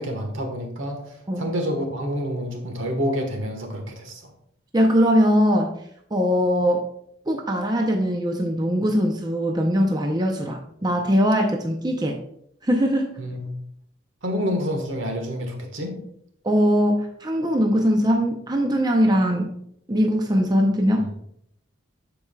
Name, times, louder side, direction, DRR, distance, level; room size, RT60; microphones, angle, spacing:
voice 1, 0.0-4.3 13.2-13.5 14.2-16.0 21.0-21.1, equal, 75° right, 3 dB, 1.4 m, -28 dB
voice 2, 4.7-5.8 6.1-6.8 7.3-12.2 12.6-13.1 16.4-19.5 19.9-21.1, equal, 20° right, 2 dB, 0.6 m, -21 dB
13.0 x 4.6 x 2.3 m, 0.72 s
head